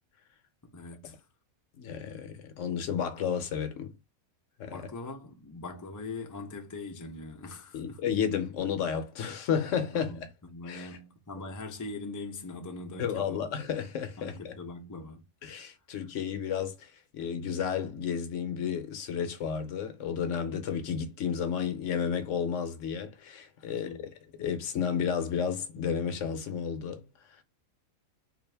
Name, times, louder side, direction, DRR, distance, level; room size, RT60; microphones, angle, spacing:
voice 1, 0.6-1.2 4.7-8.0 9.9-13.4 14.2-15.2 23.7-24.1, left 3 dB, 30° left, 0.3 m, -42 dB
voice 2, 1.8-3.9 4.6-4.8 7.7-10.3 10.6-11.0 13.0-14.5 15.4-24.1 24.4-27.0 27.3-27.4, left 7 dB, 65° left, 0.9 m, -32 dB
3.9 x 2.5 x 3.3 m
omnidirectional pair, 1.5 m